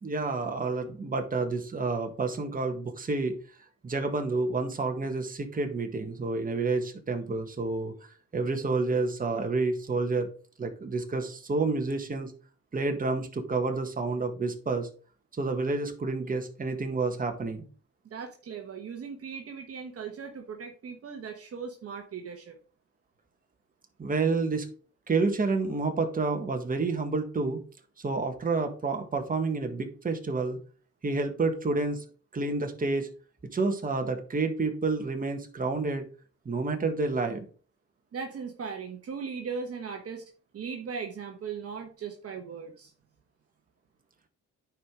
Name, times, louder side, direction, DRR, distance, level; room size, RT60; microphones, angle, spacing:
voice 1, 0.0-3.4 3.8-10.3 10.6-12.3 12.7-14.9 15.4-17.7 24.0-24.7 25.1-27.6 28.0-30.6 31.0-32.0 32.3-33.1 33.5-36.1 36.5-37.5, right 3 dB, 30° right, 5 dB, 1.7 m, -29 dB
voice 2, 18.1-22.6 38.1-40.2 40.5-42.9, right 6 dB, 50° right, 3 dB, 1.3 m, -38 dB
10.0 x 4.8 x 3.8 m, 0.39 s
cardioid pair, 90°, 30 cm